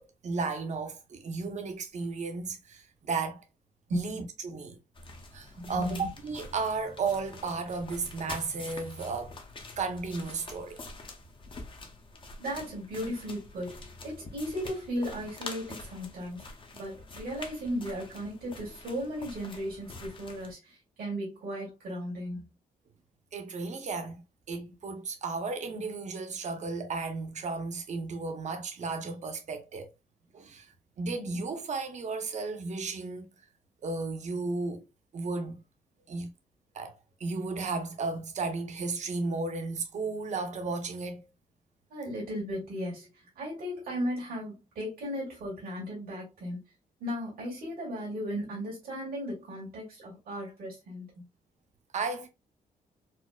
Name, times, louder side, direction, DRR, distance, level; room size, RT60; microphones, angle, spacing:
voice 1, 0.0-3.4 3.9-4.8 5.3-9.3 9.8-10.8 23.3-24.2 24.5-29.9 30.3-33.3 33.8-34.8 35.1-35.6 36.1-36.3 36.7-41.3 51.9-52.3, right 4 dB, 55° right, 0.8 m, -34 dB
sound 1, 4.9-20.5, left 3 dB, 35° left, 0.7 m, -46 dB
voice 2, 5.6-6.0 12.4-16.4 16.7-22.5 41.9-43.1 43.4-46.6 47.0-51.3, equal, 85° right, 1.8 m, -36 dB
4.2 x 2.0 x 2.2 m
cardioid pair, 100°, 15 cm